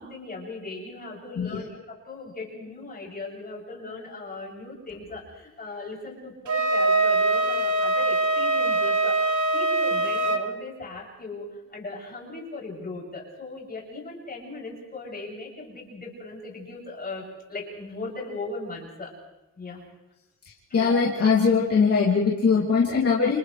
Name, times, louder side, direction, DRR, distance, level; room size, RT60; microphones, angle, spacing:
voice 1, 0.0-9.1 9.5-19.1 19.6-19.8, left 3 dB, 30° left, -3 dB, 7.8 m, -38 dB
Wind instrument woodwind instrument, 6.5-10.4, right 2 dB, 80° right, 1.9 m, -23 dB
voice 2, 20.7-23.4, left 5 dB, 50° left, -5 dB, 3.1 m, -21 dB
29.5 x 28.5 x 3.4 m, 0.97 s
wide cardioid pair, 165°, 30 cm